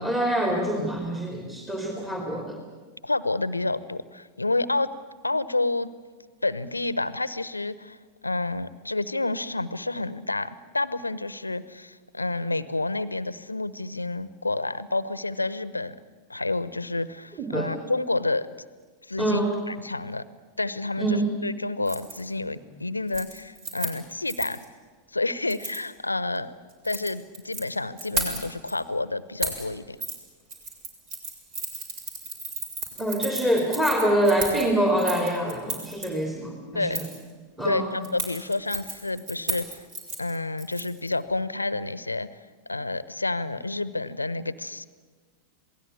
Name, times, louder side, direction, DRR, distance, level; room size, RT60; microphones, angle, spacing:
voice 1, 0.0-2.6 17.4-17.7 19.2-19.6 21.0-21.3 33.0-37.0 37.6-38.0, right 1 dB, 15° right, 1 dB, 3.2 m, -25 dB
voice 2, 3.0-4.9 5.2-5.9 6.4-8.0 8.2-16.0 16.3-18.5 19.1-20.2 20.6-24.7 25.1-26.6 26.8-30.0 36.7-37.0 37.6-39.8 40.2-42.3 42.7-44.9, left 2 dB, 80° left, 17 dB, 0.8 m, -29 dB
Keys jangling, 21.8-22.2 22.5-22.8 23.1-24.6 25.5-25.8 26.7-27.6 28.0-28.7 29.4-29.7 30.0-30.2 30.5-36.1 36.9-37.2 38.0-41.1 41.4-41.5, right 2 dB, 45° right, 5.1 m, -34 dB
27.0 x 19.0 x 8.5 m, 1.4 s
figure-of-eight pair, 90°, 0 cm